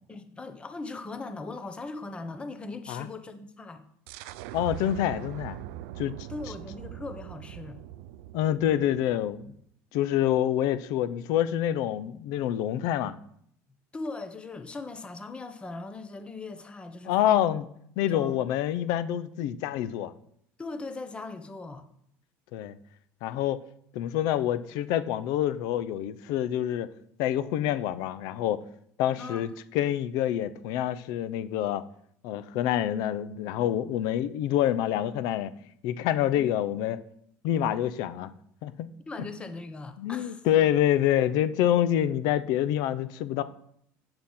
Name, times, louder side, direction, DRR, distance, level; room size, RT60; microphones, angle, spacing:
voice 1, 0.1-3.8 6.3-7.9 13.9-17.5 18.1-18.4 20.6-21.9 29.2-29.4 36.3-36.5 39.1-40.4, left 3 dB, 15° left, 8 dB, 1.0 m, -39 dB
sound 1, 4.1-9.6, right 13 dB, 90° right, 0.5 m, -42 dB
voice 2, 4.5-5.6 6.0-6.1 8.3-9.5 9.9-13.2 17.1-17.6 18.0-20.1 22.5-22.8 23.2-23.6 23.9-26.9 27.2-28.6 29.0-29.5 29.7-31.8 32.2-35.5 35.8-37.0 37.4-38.3 38.6-38.9 40.0-43.4, left 11 dB, 70° left, 14 dB, 0.6 m, -27 dB
7.8 x 6.7 x 5.6 m, 0.69 s
cardioid pair, 135°, 7 cm